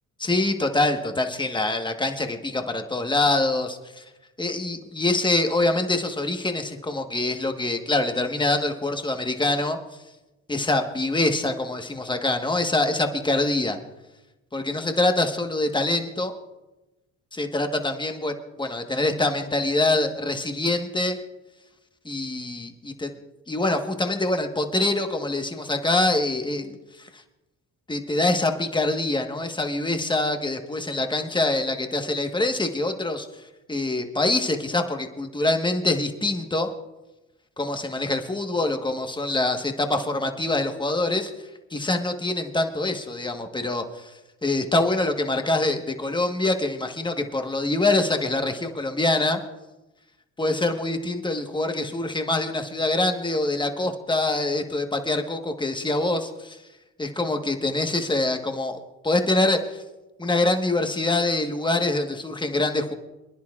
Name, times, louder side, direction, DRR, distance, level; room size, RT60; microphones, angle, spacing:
voice 1, 0.2-4.0 4.4-9.8 10.5-13.8 14.5-16.3 17.3-21.2 22.0-23.1 23.5-27.2 27.9-33.3 33.7-36.7 37.6-41.3 41.7-44.1 44.4-49.4 50.4-56.6 57.0-58.8 59.0-59.8 60.2-62.9, left 2 dB, 15° left, 5 dB, 1.3 m, -25 dB
27.0 x 10.5 x 2.4 m, 1.0 s
cardioid pair, 90°, 30 cm